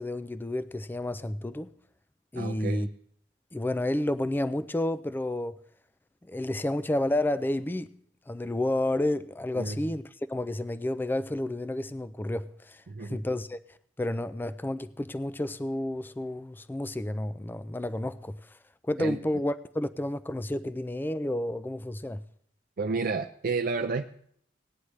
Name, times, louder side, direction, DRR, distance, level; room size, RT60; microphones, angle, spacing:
voice 1, 0.0-1.7 2.3-2.9 3.5-5.6 6.3-7.9 8.3-13.6 14.0-18.6 18.8-22.2, left 1 dB, 10° left, 0.3 m, -31 dB
voice 2, 2.3-2.9 9.6-9.8 12.9-13.2 19.0-19.2 22.8-24.0, right 4 dB, 50° right, 0.4 m, -31 dB
18.0 x 9.6 x 3.2 m
head